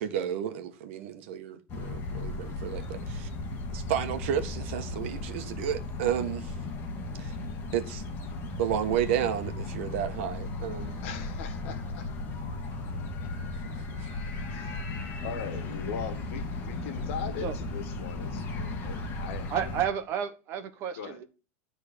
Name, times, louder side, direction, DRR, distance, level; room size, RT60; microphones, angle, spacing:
voice 1, 0.0-3.3 3.7-6.5 7.2-7.3 7.7-8.0 8.6-11.0 13.6-14.0, right 10 dB, 65° right, 1.4 m, -32 dB
sound 1, 1.7-19.9, left 2 dB, 30° left, 1.8 m, -36 dB
voice 2, 11.0-12.1 14.5-19.7 20.9-21.2, left 7 dB, 65° left, 1.6 m, -40 dB
voice 3, 19.5-21.2, right 8 dB, 35° right, 1.2 m, -31 dB
12.0 x 4.0 x 6.8 m
supercardioid pair, 165°, 7 cm